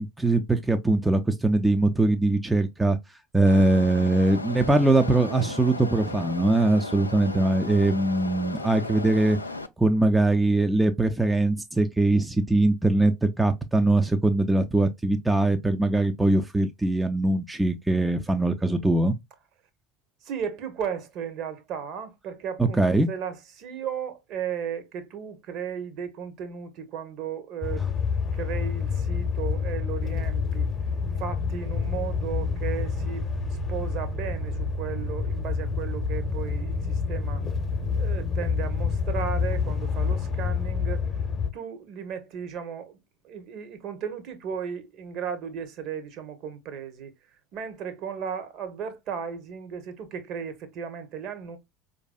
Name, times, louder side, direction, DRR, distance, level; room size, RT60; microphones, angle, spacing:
voice 1, 0.0-3.0 3.3-9.4 9.8-19.2 22.6-23.1, right 2 dB, 10° right, 0.4 m, -22 dB
gen loop, 3.5-9.7, left 2 dB, 85° left, 0.3 m, -35 dB
voice 2, 20.2-27.9 28.3-30.7 31.2-37.5 37.9-41.1 41.5-43.0 43.2-47.1 47.5-51.6, right 7 dB, 50° right, 0.9 m, -35 dB
sound 1, 27.6-41.5, left 5 dB, 30° left, 0.8 m, -28 dB
4.5 x 2.6 x 2.2 m
figure-of-eight pair, 65°, 0 cm